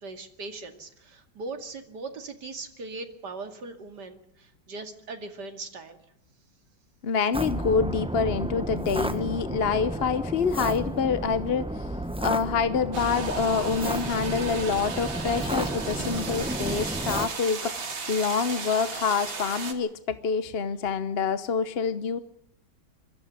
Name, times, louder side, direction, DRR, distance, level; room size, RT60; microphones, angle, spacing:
voice 1, 0.0-6.0, right 3 dB, 55° right, 6 dB, 2.9 m, -39 dB
voice 2, 7.0-11.9 12.2-22.2, left 5 dB, 45° left, 12 dB, 0.8 m, -27 dB
sound 1, 7.3-17.3, right 1 dB, 5° right, 0.5 m, -32 dB
sound 2, 12.9-19.7, right 4 dB, 70° right, 3.2 m, -35 dB
23.5 x 13.5 x 9.4 m, 0.77 s
omnidirectional pair, 2.2 m